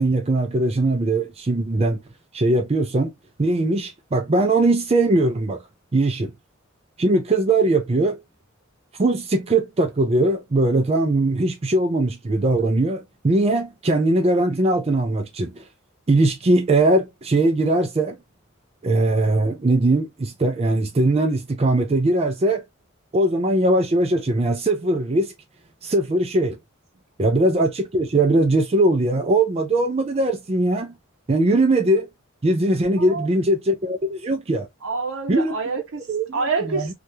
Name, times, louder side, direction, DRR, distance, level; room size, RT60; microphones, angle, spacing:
voice 1, 0.0-2.0 2.3-3.1 3.4-5.6 5.9-6.3 7.0-8.2 9.0-15.6 16.1-18.2 18.8-22.6 23.1-25.3 25.8-26.6 27.2-30.9 31.3-32.1 32.4-34.7 35.3-35.6 36.1-36.3 36.7-36.9, right 2 dB, 30° right, 0.4 m, -20 dB
voice 2, 33.0-33.3 34.8-36.1 36.3-36.9, right 4 dB, 85° right, 0.7 m, -27 dB
2.7 x 2.4 x 3.1 m
head